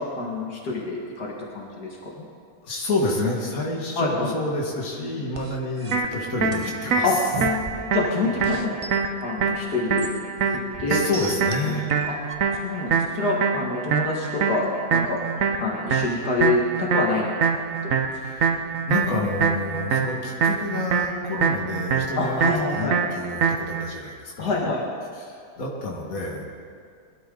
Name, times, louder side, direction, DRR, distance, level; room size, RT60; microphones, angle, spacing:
voice 1, 0.0-2.3 4.0-4.3 7.0-7.2 7.9-8.8 9.2-10.1 10.8-11.0 11.7-11.8 12.1-12.2 12.6-15.2 15.6-17.2 17.8-17.9 22.2-23.0 24.4-24.8, left 3 dB, 85° left, -2 dB, 2.4 m, -26 dB
voice 2, 2.6-7.0 10.7-11.9 18.1-18.6 18.9-24.6 25.2-26.4, left 2 dB, 60° left, -2 dB, 2.5 m, -29 dB
sound 1, 5.3-8.1 8.4-9.0 9.6-12.3, right 3 dB, 30° right, 0.7 m, -36 dB
sound 2, 5.9-23.9, right 5 dB, 60° right, 1.3 m, -25 dB
22.0 x 12.5 x 3.9 m, 2.2 s
omnidirectional pair, 1.6 m